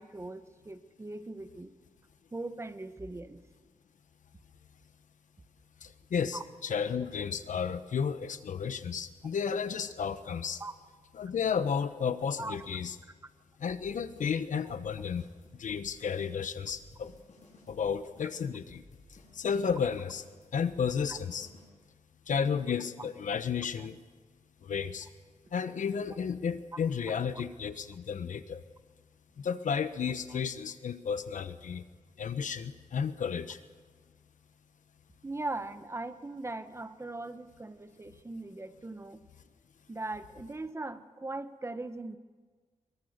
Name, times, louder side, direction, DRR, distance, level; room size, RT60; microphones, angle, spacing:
voice 1, 0.0-1.7 2.3-3.4 6.3-6.4 10.6-10.7 12.4-12.6 21.1-21.2 23.0-23.1 30.3-30.4 35.2-39.2 39.9-42.2, right 2 dB, 20° right, 10 dB, 1.0 m, -40 dB
voice 2, 5.8-10.6 11.2-12.9 13.6-15.3 15.5-17.1 17.7-18.8 19.3-20.2 20.5-21.5 22.3-24.0 24.6-25.1 25.5-28.6 29.4-31.8 32.2-33.6, left 6 dB, 75° left, 11 dB, 1.1 m, -32 dB
sound 1, 13.7-21.7, left 2 dB, 60° left, 8.0 m, -57 dB
23.0 x 22.5 x 6.7 m, 1.5 s
wide cardioid pair, 120°, 13 cm